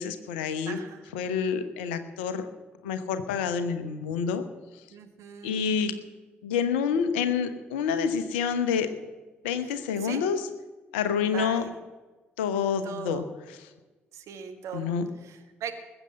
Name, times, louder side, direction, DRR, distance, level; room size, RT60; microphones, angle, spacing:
voice 1, 0.0-0.8 1.1-2.5 2.8-4.4 4.7-4.8 5.4-5.9 6.4-8.9 9.4-10.4 10.9-11.6 12.4-13.2 14.7-15.0, left 6 dB, 75° left, 11 dB, 0.9 m, -28 dB
voice 2, 0.6-1.1 4.9-5.6 10.0-10.2 11.2-11.8 12.8-13.2 14.1-15.0 15.2-15.7, right 8 dB, 60° right, 5 dB, 1.6 m, -39 dB
20.5 x 8.0 x 6.5 m, 1.2 s
figure-of-eight pair, 40°, 6 cm